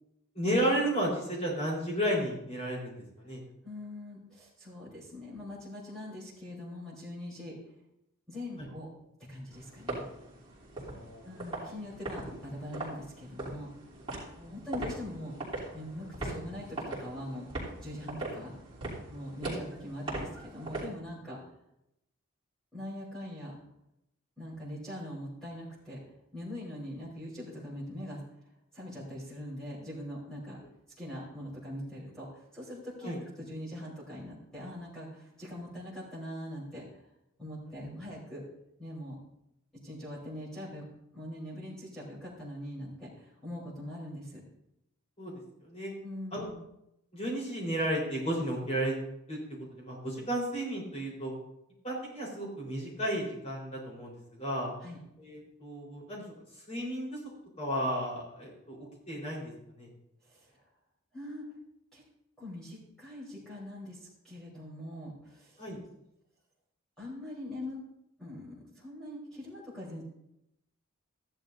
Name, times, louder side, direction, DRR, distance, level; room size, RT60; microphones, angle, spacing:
voice 1, 0.3-3.4 8.6-8.7 10.8-11.3 14.4-14.6 16.2-16.4 19.4-19.6 33.0-33.2 37.7-37.8 45.2-45.9 46.3-46.5 47.1-48.9 49.3-49.4 49.7-51.3 51.8-54.1 54.4-54.7 55.2-56.3 56.7-57.2 57.6-59.5 59.8-59.9 65.6-65.8, equal, 30° left, -3 dB, 4.0 m, -33 dB
voice 2, 3.6-7.6 8.3-8.9 9.3-10.0 11.2-13.7 14.5-15.3 15.7-18.5 19.1-21.4 22.7-23.6 24.4-26.0 26.3-28.2 28.7-30.6 31.0-37.0 37.4-38.4 38.8-39.2 39.7-40.8 41.1-44.4 46.0-46.6 54.8-55.0 60.2-60.6 61.1-61.5 61.9-62.0 62.4-65.6 67.0-67.8 68.2-70.0, left 1 dB, 5° left, -8 dB, 3.7 m, -42 dB
sound 1, 9.5-20.9, right 2 dB, 25° right, 3.1 m, -41 dB
14.5 x 11.0 x 2.6 m, 0.82 s
head